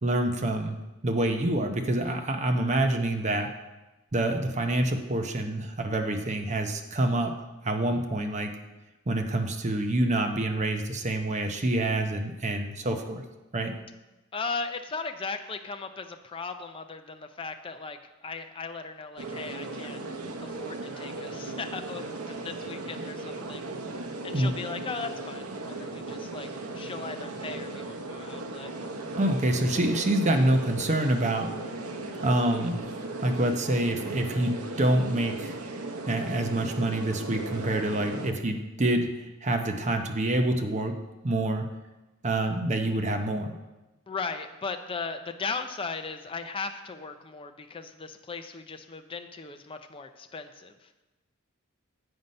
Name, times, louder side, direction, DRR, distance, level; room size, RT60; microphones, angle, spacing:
voice 1, 0.0-0.8 1.0-3.5 4.1-7.3 7.6-8.5 9.1-13.2 13.5-13.7 24.3-24.6 29.2-31.5 32.2-32.8 33.2-35.6 36.1-41.0 41.2-41.7 42.2-43.5, right 1 dB, 35° right, 5 dB, 0.7 m, -26 dB
voice 2, 14.3-20.0 20.4-23.6 24.2-28.7 44.1-50.9, left 4 dB, 25° left, 7 dB, 0.4 m, -37 dB
sound 1, 19.2-38.3, right 2 dB, 80° right, 0.8 m, -37 dB
7.9 x 5.6 x 5.3 m, 1.1 s
head